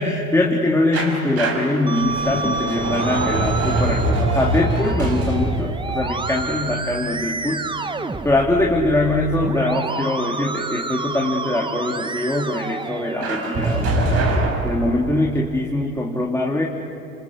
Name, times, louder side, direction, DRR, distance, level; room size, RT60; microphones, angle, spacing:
voice 1, 0.0-7.7 8.2-14.2 14.6-16.6, left 2 dB, 5° left, -2 dB, 2.7 m, -22 dB
sound 1, 0.9-7.7 13.2-15.4, right 2 dB, 40° right, 5.2 m, -24 dB
Musical instrument, 1.9-13.8, right 3 dB, 15° right, 1.1 m, -30 dB
28.0 x 27.0 x 6.4 m, 2.6 s
hypercardioid pair, 80°, 37 cm